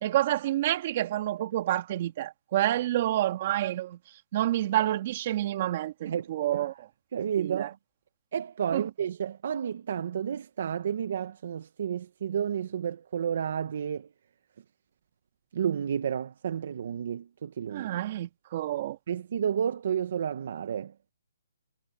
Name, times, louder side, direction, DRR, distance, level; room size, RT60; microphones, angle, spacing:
voice 1, 0.0-4.0 4.3-6.7 7.4-7.7 8.7-8.8 17.7-19.0, right 13 dB, 35° right, 2.5 m, -28 dB
voice 2, 6.0-6.7 7.1-7.8 8.3-14.1 15.5-17.9 19.1-20.9, right 8 dB, 50° right, 1.2 m, -31 dB
hypercardioid pair, 165°, 0 cm